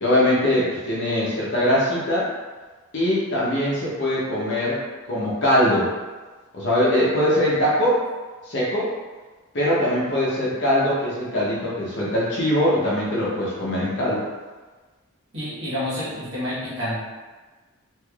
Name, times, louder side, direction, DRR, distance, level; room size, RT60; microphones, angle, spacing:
voice 1, 0.0-2.3 2.9-4.8 5.1-5.9 6.5-8.0 8.5-8.9 9.5-14.2, left 1 dB, 55° left, -7 dB, 0.7 m, -21 dB
voice 2, 15.3-17.0, left 1 dB, 55° right, -9 dB, 1.1 m, -28 dB
3.2 x 3.0 x 2.3 m, 1.3 s
head